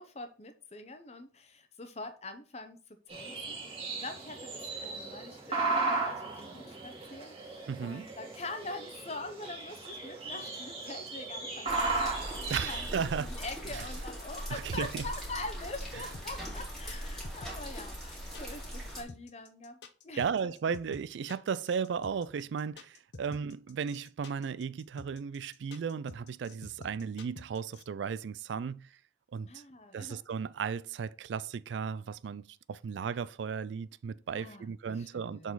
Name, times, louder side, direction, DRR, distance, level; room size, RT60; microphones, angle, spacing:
voice 1, 0.0-19.8 20.0-20.3 29.4-30.2 34.3-35.5, left 2 dB, 35° left, 0.9 m, -44 dB
sound 1, 3.1-13.2, right 3 dB, 30° right, 1.8 m, -36 dB
voice 2, 7.7-8.0 12.5-13.3 13.7-13.8 14.5-15.0 20.2-28.9 29.3-29.6 29.9-35.5, right 6 dB, 75° right, 0.3 m, -35 dB
sound 2, 11.7-19.0, equal, ahead, 2.3 m, -41 dB
sound 3, 16.1-27.8, left 3 dB, 65° left, 0.8 m, -48 dB
7.1 x 4.1 x 3.9 m
head